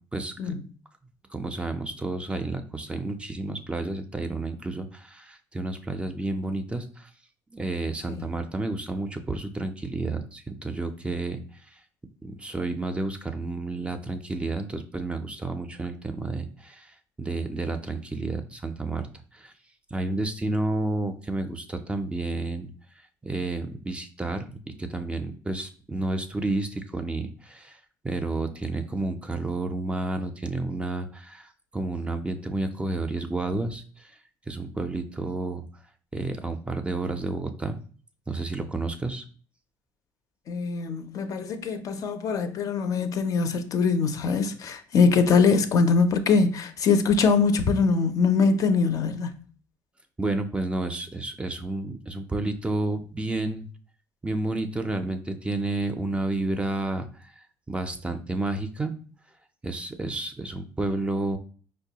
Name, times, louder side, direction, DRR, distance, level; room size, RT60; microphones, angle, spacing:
voice 1, 0.1-0.5 1.3-7.1 7.5-11.4 11.7-11.8 12.2-19.5 19.9-22.7 23.2-27.8 28.0-34.1 34.5-35.7 36.1-37.8 38.3-39.2 50.2-53.7 54.2-57.3 57.7-58.9 59.6-61.4, right 2 dB, 15° right, 0.4 m, -31 dB
voice 2, 40.5-49.4, left 5 dB, 50° left, 0.4 m, -23 dB
4.6 x 2.1 x 2.8 m
cardioid pair, 100°, 7 cm